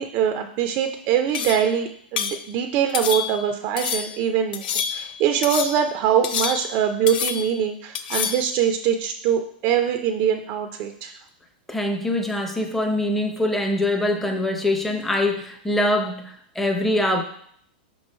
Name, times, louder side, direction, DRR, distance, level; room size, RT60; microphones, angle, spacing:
voice 1, 0.0-4.7 4.9-11.1, right 8 dB, 40° right, 6 dB, 0.4 m, -23 dB
sound 1, 1.3-1.7 2.2-2.4 2.9-3.5 3.8-4.2 4.5-5.1 5.4-5.9 6.2-6.8 7.1-7.6 7.9-8.5, left 8 dB, 65° left, 0.5 m, -28 dB
voice 2, 11.7-17.2, left 1 dB, 5° left, 3 dB, 0.7 m, -23 dB
5.9 x 3.1 x 5.3 m, 0.65 s
supercardioid pair, 145°, 5 cm